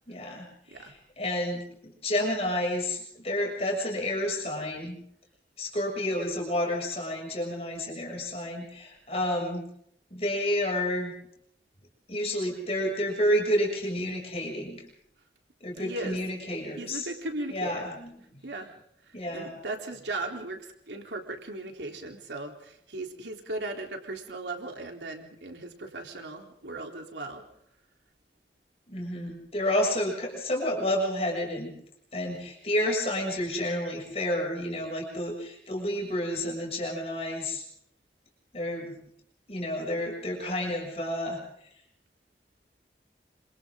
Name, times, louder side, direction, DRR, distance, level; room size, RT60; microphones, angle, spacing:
voice 1, 0.1-5.0 5.6-9.6 10.1-11.1 12.1-14.8 15.6-17.1 17.5-18.1 19.1-19.5 28.9-31.7 32.1-37.6 38.5-39.0 39.5-41.4, left 1 dB, 35° left, 0 dB, 7.0 m, -30 dB
voice 2, 15.8-16.2 16.8-17.8 18.4-18.8 19.1-27.4, right 2 dB, 85° right, 3 dB, 3.7 m, -37 dB
28.0 x 27.0 x 3.8 m, 0.70 s
head